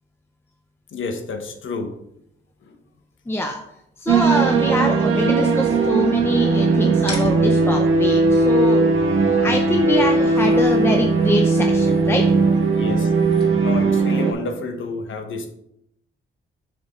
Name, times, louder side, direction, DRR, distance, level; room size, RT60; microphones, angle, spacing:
voice 1, 0.9-2.0 2.6-2.8 12.7-13.1 13.6-15.5, left 3 dB, 70° left, 6 dB, 1.2 m, -29 dB
voice 2, 3.3-3.6 4.0-9.1 9.4-12.3, left 2 dB, 10° left, 3 dB, 0.6 m, -24 dB
sound 1, 4.1-14.3, right 4 dB, 80° right, 1.1 m, -18 dB
sound 2, 7.0-14.0, left 1 dB, 25° left, 3.1 m, -42 dB
6.8 x 6.2 x 3.7 m, 0.76 s
wide cardioid pair, 120°, 21 cm